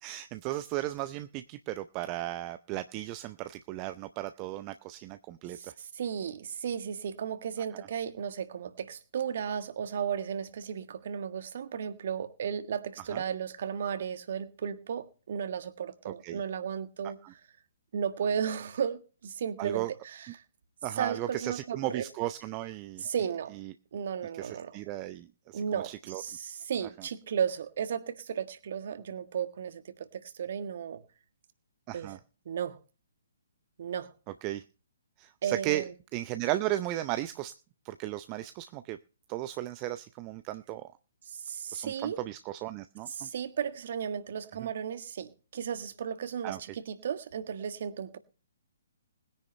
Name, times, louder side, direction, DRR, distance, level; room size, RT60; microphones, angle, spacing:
voice 1, 0.0-5.7 7.7-7.9 13.1-13.2 16.0-16.4 17.2-17.3 19.6-19.9 20.8-23.0 23.6-23.7 24.3-26.2 31.9-32.2 34.4-34.6 35.2-35.9 36.1-37.5 37.8-39.0 39.3-40.8 41.7-43.3 44.6-44.7 46.4-46.6, right 15 dB, 25° right, 0.6 m, -35 dB
voice 2, 5.5-17.2 17.9-20.4 21.0-22.0 23.0-23.5 23.9-24.8 25.5-31.0 31.9-32.2 32.4-32.8 33.8-34.1 35.4-35.9 41.3-42.2 43.1-48.2, right 7 dB, 50° right, 1.5 m, -34 dB
20.5 x 10.0 x 3.2 m
figure-of-eight pair, 130°, 0 cm